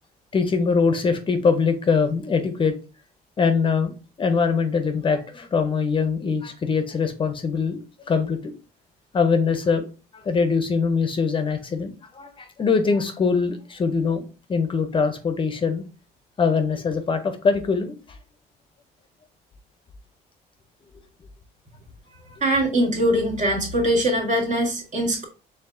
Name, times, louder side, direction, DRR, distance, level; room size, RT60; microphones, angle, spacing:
voice 1, 0.3-2.7 3.4-7.8 8.1-8.5 9.1-9.9 10.1-15.8 16.4-18.0, left 5 dB, 30° left, 8 dB, 0.6 m, -22 dB
voice 2, 22.4-25.3, right 1 dB, 45° right, 0 dB, 1.7 m, -22 dB
4.5 x 3.6 x 2.5 m, 0.34 s
cardioid pair, 110°, 17 cm